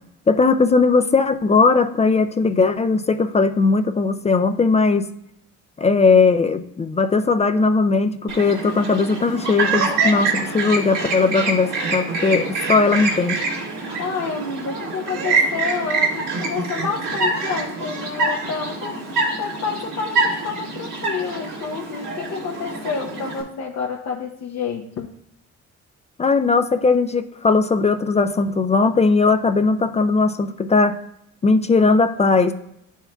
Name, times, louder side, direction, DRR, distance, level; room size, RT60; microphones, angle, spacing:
voice 1, 0.3-5.1 5.8-13.4 26.2-31.0 31.4-32.5, left 4 dB, 25° left, 9 dB, 0.3 m, -18 dB
Chirp tweet, 8.3-23.4, right 3 dB, 85° right, 1.7 m, -25 dB
voice 2, 14.0-19.0 19.4-25.1, left 5 dB, 60° left, 0 dB, 0.7 m, -29 dB
10.5 x 4.5 x 2.2 m, 0.78 s
cardioid pair, 90°, 30 cm